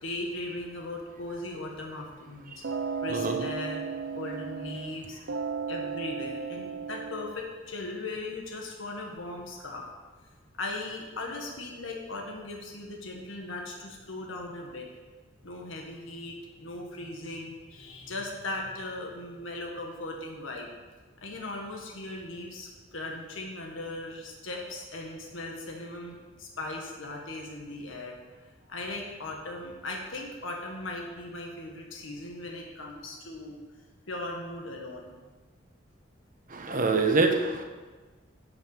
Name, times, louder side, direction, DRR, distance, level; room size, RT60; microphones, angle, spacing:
voice 1, 0.0-2.6 3.0-5.2 5.7-9.8 10.6-14.9 15.4-20.7 21.2-33.6 34.1-35.2, left 2 dB, 85° left, 0 dB, 1.6 m, -38 dB
sound 1, 2.6-5.0 5.3-7.3, right 5 dB, 80° right, 0.7 m, -34 dB
voice 2, 36.5-37.6, right 3 dB, 45° right, 5 dB, 1.2 m, -25 dB
11.5 x 5.6 x 7.2 m, 1.3 s
head